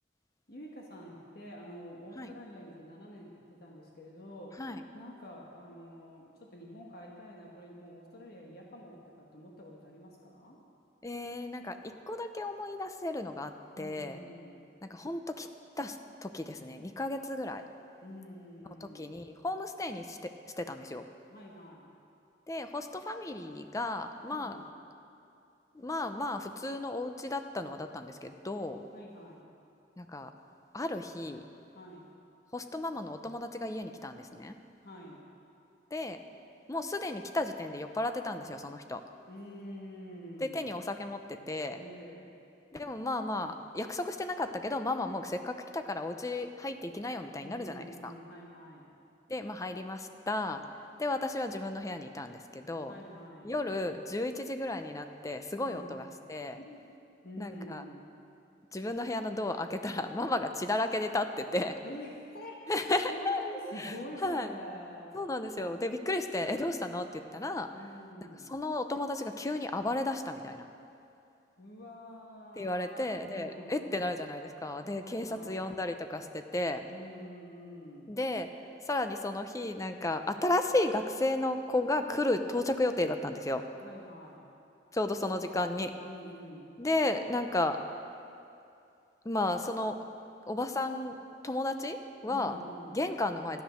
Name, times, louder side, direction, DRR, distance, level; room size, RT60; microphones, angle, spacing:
voice 1, 0.5-4.6 4.9-10.6 13.7-14.7 18.0-19.1 21.3-21.9 24.3-24.8 28.9-29.5 31.7-32.1 34.8-35.3 39.3-40.8 41.7-42.3 47.4-49.0 52.9-53.6 55.6-56.0 56.6-57.0 57.2-58.1 61.8-62.7 63.1-65.2 67.7-68.6 71.6-74.1 75.0-75.7 76.9-78.1 83.7-84.5 86.0-86.8 92.2-93.1, equal, 60° left, -1 dB, 1.5 m, -47 dB
voice 2, 11.0-11.8 12.1-13.5 13.8-14.2 14.9-15.5 15.8-16.0 16.2-17.6 18.9-20.3 20.6-21.0 22.5-24.6 25.7-28.8 30.0-30.3 30.7-31.4 32.5-34.5 35.9-36.2 36.7-39.0 40.4-41.8 42.7-48.1 49.3-50.6 51.0-53.0 53.4-56.6 57.4-57.8 58.7-61.8 62.7-63.4 63.8-63.9 64.2-64.5 65.1-67.7 68.5-70.7 72.6-76.9 78.1-78.5 78.9-83.6 84.9-85.9 86.8-87.8 89.2-90.0 90.5-91.2 91.4-92.6 92.9-93.6, left 2 dB, 20° left, 7 dB, 0.6 m, -33 dB
13.5 x 10.5 x 6.4 m, 2.6 s
head